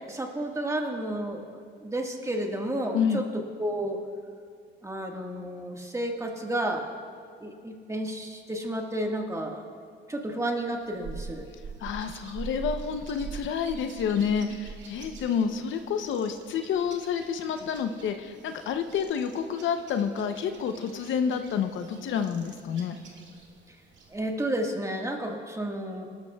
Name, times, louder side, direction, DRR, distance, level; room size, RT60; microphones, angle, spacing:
voice 1, 0.1-3.2 3.6-4.0 4.8-6.8 7.4-9.6 10.1-11.5 24.1-26.1, right 1 dB, 15° right, 1 dB, 1.6 m, -31 dB
voice 2, 2.9-3.2 11.8-23.0, left 7 dB, 75° left, 7 dB, 0.7 m, -29 dB
sound 1, 10.8-24.3, right 5 dB, 65° right, 2.0 m, -45 dB
19.5 x 12.5 x 2.3 m, 2.1 s
cardioid pair, 90°, 20 cm